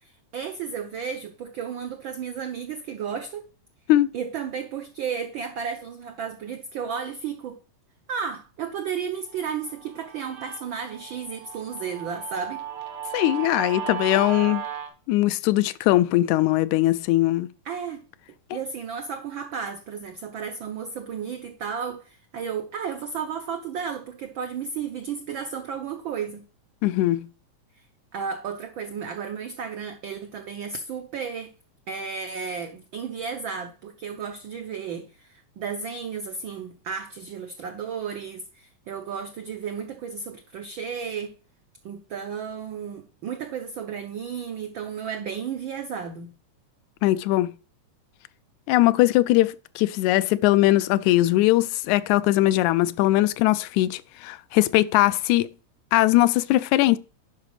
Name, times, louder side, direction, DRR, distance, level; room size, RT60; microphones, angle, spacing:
voice 1, 0.0-3.4 4.1-7.6 8.1-12.6 17.6-18.0 18.5-26.4 27.8-27.9 28.1-31.5 31.9-41.3 41.8-46.3, right 6 dB, 90° right, 1.0 m, -33 dB
Guitar, 9.4-14.9, right 9 dB, 65° right, 2.4 m, -35 dB
voice 2, 13.1-14.6 15.1-17.5 26.8-27.3 47.0-47.5 48.7-55.5 55.9-57.0, left 16 dB, 90° left, 2.0 m, -20 dB
10.5 x 4.9 x 4.8 m
omnidirectional pair, 3.3 m